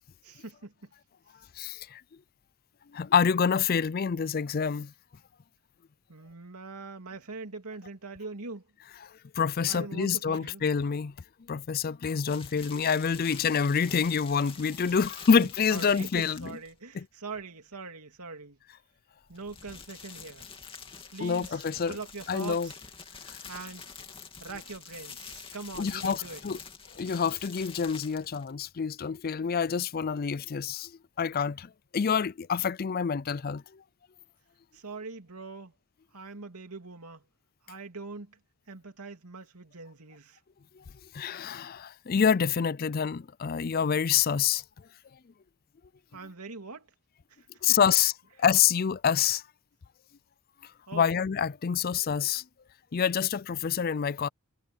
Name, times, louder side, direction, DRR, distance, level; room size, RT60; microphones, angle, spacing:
voice 1, 0.2-0.9 6.1-8.6 9.7-10.6 15.7-18.6 19.3-20.5 21.1-21.6 21.9-22.7 23.5-23.9 24.4-26.4 34.7-35.7 36.1-37.2 37.6-38.4 38.7-40.4 46.1-46.9 47.4-47.8 50.9-51.1, right 3 dB, 90° right, 2.8 m, -42 dB
voice 2, 1.6-2.0 2.9-4.9 9.4-11.1 11.5-16.5 16.9-17.1 21.2-22.0 22.3-22.7 23.3-23.4 25.8-26.6 27.0-30.9 31.2-33.6 41.1-44.6 47.6-48.1 48.4-49.4 50.9-52.4 52.9-54.3, left 6 dB, 40° left, 0.4 m, -27 dB
sound 1, 12.3-16.8 19.2-28.8, left 6 dB, 25° left, 2.7 m, -46 dB
head